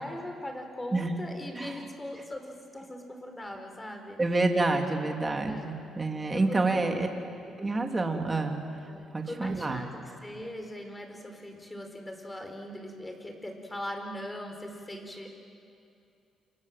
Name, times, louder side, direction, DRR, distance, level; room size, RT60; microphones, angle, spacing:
voice 1, 0.0-4.2 5.4-5.8 6.3-7.0 7.4-7.6 8.9-15.3, left 1 dB, 15° left, 4 dB, 4.9 m, -40 dB
voice 2, 4.2-7.1 7.6-8.6 9.1-9.8, right 2 dB, 20° right, 3 dB, 3.2 m, -28 dB
29.0 x 26.0 x 7.8 m, 2.5 s
cardioid pair, 90°, 0 cm